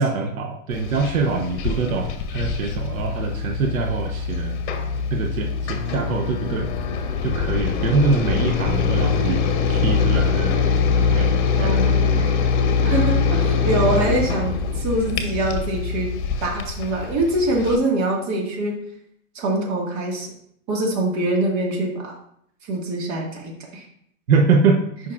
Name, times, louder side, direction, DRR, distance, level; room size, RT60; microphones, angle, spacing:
voice 1, 0.0-4.6 5.1-6.7 7.2-9.4 9.7-10.6 11.1-11.3 11.6-12.3 24.3-24.8, right 4 dB, 80° right, 3 dB, 0.9 m, -23 dB
sound 1, 0.7-17.8, left 5 dB, 55° left, 1.1 m, -23 dB
voice 2, 11.6-12.3 12.8-16.1 16.4-18.8 19.4-20.3 20.7-22.2 22.6-23.9, right 2 dB, 35° right, 0 dB, 1.8 m, -24 dB
8.6 x 5.5 x 2.4 m, 0.69 s
hypercardioid pair, 145°, 41 cm